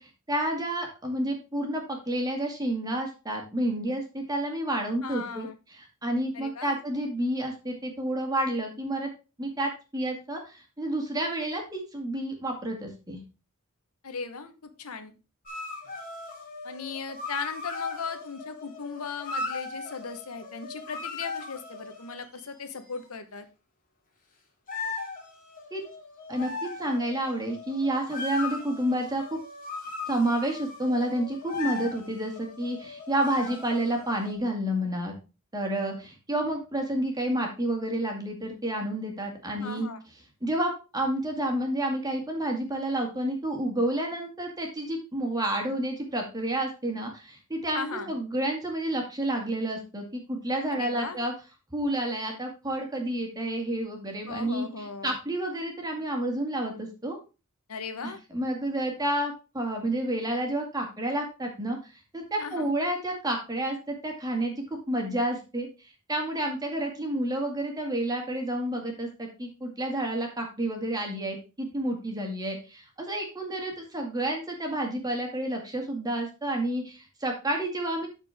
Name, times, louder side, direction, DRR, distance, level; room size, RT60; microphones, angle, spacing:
voice 1, 0.0-9.1 9.4-13.2 25.7-25.8 26.3-29.4 30.1-35.1 35.5-39.9 40.4-51.3 51.7-57.2 58.0-61.8 62.1-78.1, right 1 dB, 15° right, 2 dB, 2.1 m, -30 dB
voice 2, 5.0-5.5 6.3-6.8 14.0-15.1 16.6-23.5 39.6-40.0 47.7-48.1 50.7-51.2 54.2-55.2 57.7-58.2 62.4-62.7, left 5 dB, 80° left, 9 dB, 1.1 m, -37 dB
sound 1, 15.5-22.4 24.7-34.3, left 3 dB, 40° left, 2.3 m, -38 dB
13.0 x 4.5 x 3.5 m, 0.29 s
head